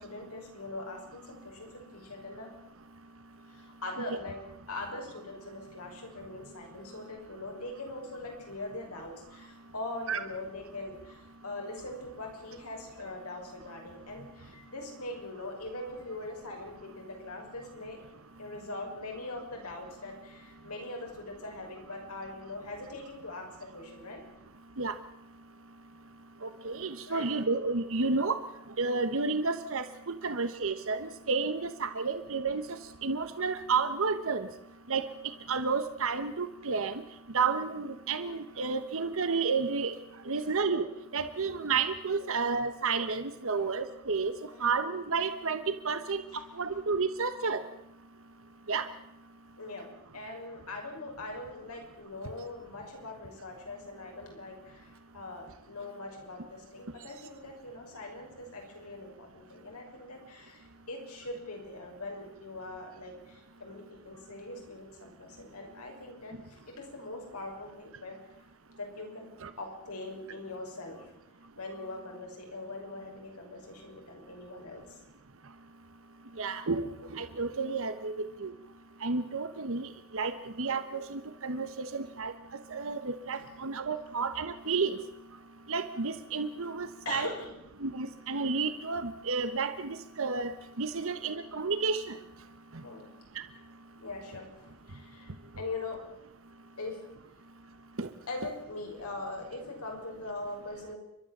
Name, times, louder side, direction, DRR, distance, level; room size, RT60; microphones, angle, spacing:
voice 1, 0.0-2.5 3.5-4.4 4.7-18.0 18.4-24.2 27.1-27.3 30.2-30.3 42.2-42.3 43.5-43.7 44.5-44.7 46.3-46.8 49.6-49.9 50.1-68.2 68.8-69.3 69.6-71.1 71.6-75.0 83.3-83.5 87.0-87.5 92.8-93.1 94.0-96.0 96.8-97.0 98.3-101.0, left 2 dB, 85° left, 1 dB, 5.9 m, -42 dB
voice 2, 26.4-28.4 28.8-34.5 34.9-35.1 35.5-37.0 37.3-39.9 40.3-40.9 41.1-44.3 44.6-47.6 48.7-48.9 69.4-69.5 76.4-78.5 79.0-82.3 82.7-85.0 85.7-87.3 87.8-92.2 98.0-98.1, right 4 dB, 65° right, 10 dB, 1.1 m, -31 dB
30.0 x 12.5 x 7.3 m, 0.81 s
head